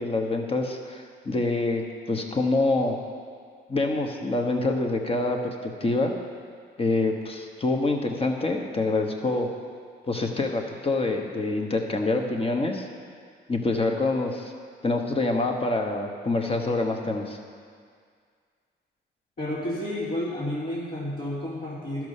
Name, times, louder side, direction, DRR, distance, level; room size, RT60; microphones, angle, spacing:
voice 1, 0.0-3.0 3.7-6.1 6.8-9.5 10.1-12.9 13.5-14.5 14.8-17.4, left 2 dB, 30° left, 3 dB, 1.2 m, -26 dB
voice 2, 19.4-22.1, left 1 dB, 50° left, -11 dB, 2.7 m, -31 dB
12.0 x 6.1 x 5.5 m, 2.1 s
cardioid pair, 90°, 20 cm